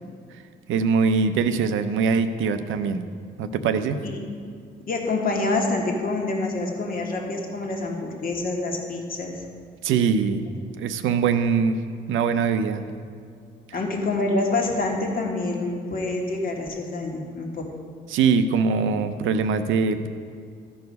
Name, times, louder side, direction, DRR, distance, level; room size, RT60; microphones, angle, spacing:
voice 1, 0.7-3.0 3.4-4.0 9.8-10.4 10.8-11.8 12.1-12.8 18.1-20.1, right 5 dB, 80° right, 9 dB, 0.6 m, -22 dB
voice 2, 4.9-9.5 13.7-17.6, left 2 dB, 45° left, 0 dB, 1.5 m, -27 dB
13.5 x 4.7 x 5.2 m, 2.2 s
cardioid pair, 90°, 20 cm